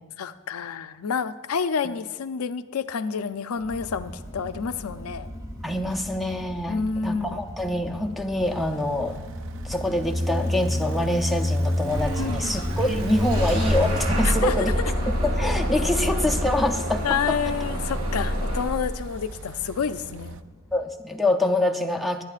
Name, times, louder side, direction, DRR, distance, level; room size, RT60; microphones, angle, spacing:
voice 1, 0.2-5.3 6.7-7.4 12.2-12.6 14.2-14.5 16.0-16.1 17.0-20.4, left 6 dB, 80° left, 11 dB, 0.5 m, -29 dB
Motorcycle, 3.6-20.8, left 1 dB, 15° right, 1.2 m, -32 dB
voice 2, 5.6-9.2 9.6-14.7 15.1-17.4 20.7-22.2, left 1 dB, ahead, 5 dB, 0.5 m, -25 dB
sound 1, 8.4-20.4, right 4 dB, 60° right, 0.4 m, -42 dB
Bus / Engine starting, 11.9-18.6, equal, 90° right, 3.6 m, -27 dB
22.5 x 9.0 x 2.4 m, 1.3 s
head